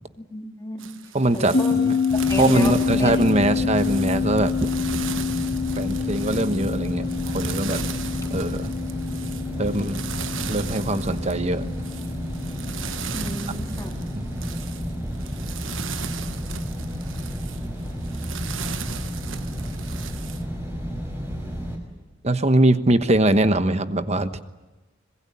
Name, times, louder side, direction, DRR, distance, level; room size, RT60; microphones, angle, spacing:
voice 1, 0.2-0.9 1.3-1.8 2.1-3.1 3.4-3.6 13.1-13.9, left 1 dB, 15° left, 1 dB, 3.3 m, -32 dB
sound 1, 0.8-20.4, right 7 dB, 70° right, 1.3 m, -37 dB
voice 2, 1.1-1.9 2.4-4.5 5.8-7.8 8.3-8.7 9.6-10.0 10.5-11.7 14.1-14.4 22.2-24.4, right 2 dB, 35° right, 11 dB, 1.2 m, -22 dB
sound 2, 1.5-14.3, left 6 dB, 50° left, 1.9 m, -28 dB
sound 3, 2.1-21.8, equal, 10° right, 5.8 m, -31 dB
25.5 x 21.5 x 8.6 m, 1.2 s
head